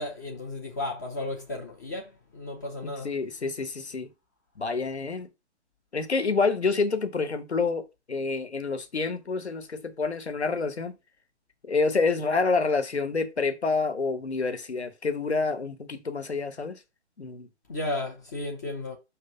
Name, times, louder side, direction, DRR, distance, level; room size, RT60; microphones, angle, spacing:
voice 1, 0.0-3.1 17.7-19.0, left 2 dB, 15° left, 0.6 m, -34 dB
voice 2, 2.8-4.1 4.6-5.3 5.9-11.0 11.6-16.8 17.2-17.5, left 4 dB, 70° left, 1.2 m, -28 dB
5.7 x 3.3 x 5.1 m
figure-of-eight pair, 135°, 34 cm